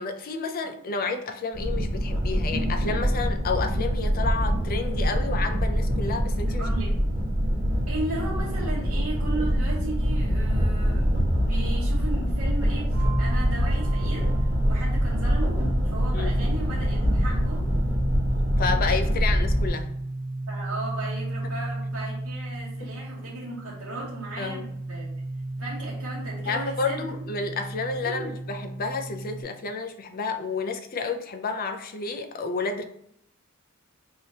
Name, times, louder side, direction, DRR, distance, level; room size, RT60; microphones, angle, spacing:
voice 1, 0.0-6.6 16.1-16.4 18.6-19.9 22.8-22.9 24.4-24.6 26.4-32.8, left 4 dB, 45° left, 0.4 m, -30 dB
sound 1, 1.5-19.7, equal, 50° right, 1.3 m, -24 dB
voice 2, 6.3-7.0 7.9-11.1 11.4-17.6 20.5-25.1 25.6-27.2 28.0-28.3, right 2 dB, 90° right, 0.9 m, -36 dB
sound 2, 12.9-29.4, right 2 dB, 25° left, 1.3 m, -34 dB
4.8 x 2.8 x 2.8 m
head